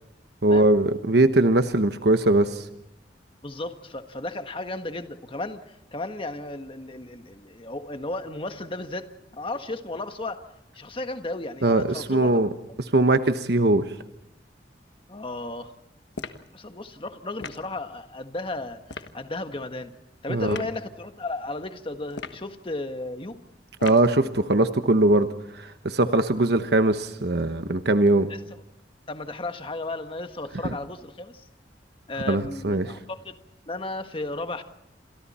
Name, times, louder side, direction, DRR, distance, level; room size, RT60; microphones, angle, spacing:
voice 1, 0.4-2.6 11.6-12.5 12.8-13.9 20.3-20.6 23.8-25.3 25.5-28.3 30.6-30.7 32.3-32.9, right 2 dB, 65° right, 9 dB, 1.1 m, -21 dB
voice 2, 3.4-10.4 10.7-12.5 15.1-15.7 16.5-19.9 20.2-23.4 28.3-28.4 29.1-31.5 32.1-33.4 33.7-34.6, left 2 dB, 30° left, 7 dB, 1.5 m, -34 dB
sound 1, 16.1-16.5 17.4-17.7 18.9-19.1 20.5-20.7 22.1-22.5 23.8-24.1, left 4 dB, 80° left, 1.3 m, -37 dB
29.5 x 27.0 x 4.3 m, 0.89 s
head